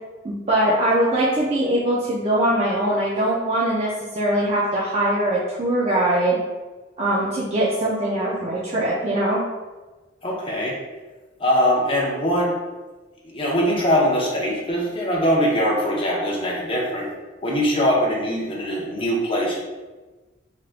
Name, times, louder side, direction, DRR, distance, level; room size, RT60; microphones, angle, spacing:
voice 1, 0.2-6.4 7.0-9.4, right 1 dB, 30° right, -7 dB, 0.4 m, -22 dB
voice 2, 10.2-10.8 11.4-12.5 13.2-17.1 17.4-19.6, equal, 25° left, -3 dB, 0.6 m, -22 dB
3.3 x 2.5 x 2.4 m, 1.2 s
head